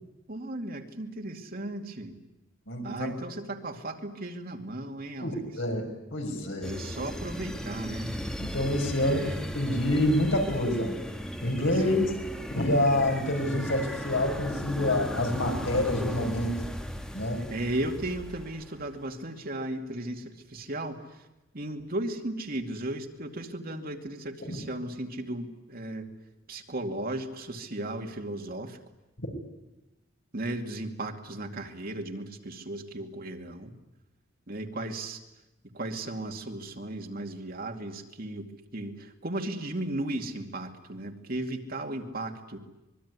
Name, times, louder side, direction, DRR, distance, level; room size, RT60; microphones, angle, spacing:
voice 1, 0.3-2.2 2.8-5.4 6.7-8.1 9.0-9.4 11.7-12.2 17.5-21.2 21.5-26.1 26.5-28.8 30.3-33.7 34.5-35.2 35.7-42.6, right 1 dB, 50° right, 4 dB, 2.5 m, -35 dB
voice 2, 2.7-3.1 5.2-6.7 8.4-9.2 9.5-11.0 11.4-12.1 12.5-16.6 17.1-17.5 24.5-24.6, left 1 dB, 70° left, 3 dB, 6.3 m, -27 dB
sound 1, 6.6-18.9, equal, 5° left, 1.6 m, -37 dB
25.5 x 22.5 x 9.7 m, 0.99 s
head